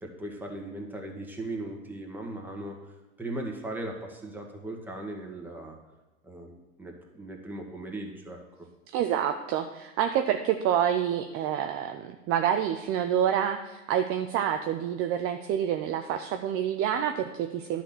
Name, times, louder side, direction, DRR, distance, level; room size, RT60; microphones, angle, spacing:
voice 1, 0.0-2.8 3.2-5.7 6.2-8.4, right 1 dB, 5° right, 0 dB, 1.8 m, -38 dB
voice 2, 8.9-17.8, right 9 dB, 35° right, 6 dB, 0.6 m, -27 dB
11.0 x 4.3 x 7.2 m, 1.1 s
hypercardioid pair, 90°, 39 cm